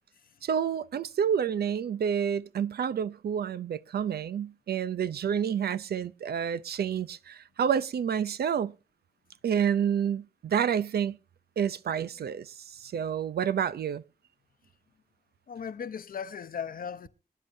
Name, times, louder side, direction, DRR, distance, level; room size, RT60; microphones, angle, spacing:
voice 1, 0.4-8.7 9.4-11.2 11.6-14.0, right 8 dB, 75° right, 0.7 m, -29 dB
voice 2, 15.5-17.1, left 7 dB, 60° left, 0.9 m, -37 dB
24.0 x 11.0 x 2.7 m
wide cardioid pair, 170°, 16 cm